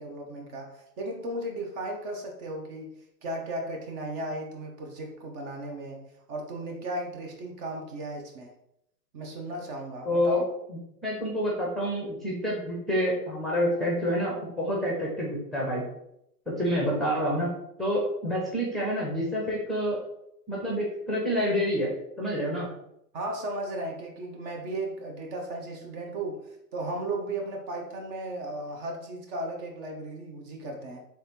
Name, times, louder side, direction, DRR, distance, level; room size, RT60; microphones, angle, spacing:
voice 1, 0.0-8.5 9.1-10.4 23.1-31.1, right 1 dB, 35° right, 1 dB, 1.0 m, -35 dB
voice 2, 10.0-10.4 10.7-15.8 16.6-17.5 17.8-20.0 20.5-21.9 22.2-22.7, equal, ahead, -3 dB, 0.8 m, -28 dB
3.5 x 3.4 x 4.3 m, 0.78 s
hypercardioid pair, 130°, 48 cm